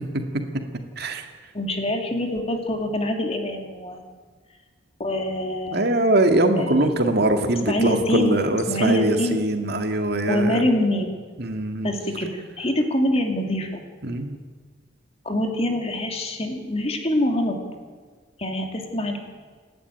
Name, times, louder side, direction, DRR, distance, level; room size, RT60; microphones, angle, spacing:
voice 1, 1.0-1.3 5.7-10.6 11.4-11.9 14.0-14.4, right 1 dB, 60° right, 5 dB, 2.1 m, -22 dB
voice 2, 1.5-4.0 5.0-5.9 6.6-6.7 7.7-8.4 8.7-9.4 10.3-11.1 11.8-13.8 15.2-17.6 18.4-19.2, left 1 dB, 35° left, 3 dB, 2.8 m, -25 dB
28.5 x 11.5 x 9.3 m, 1.5 s
head